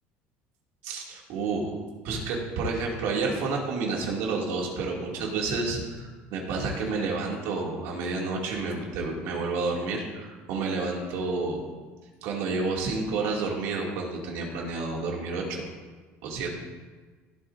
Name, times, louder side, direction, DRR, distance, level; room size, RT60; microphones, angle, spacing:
voice 1, 0.8-1.7 2.0-11.6 12.2-15.6 16.2-16.6, right 3 dB, 70° right, -2 dB, 2.5 m, -30 dB
16.0 x 8.7 x 2.6 m, 1.4 s
cardioid pair, 150°, 5 cm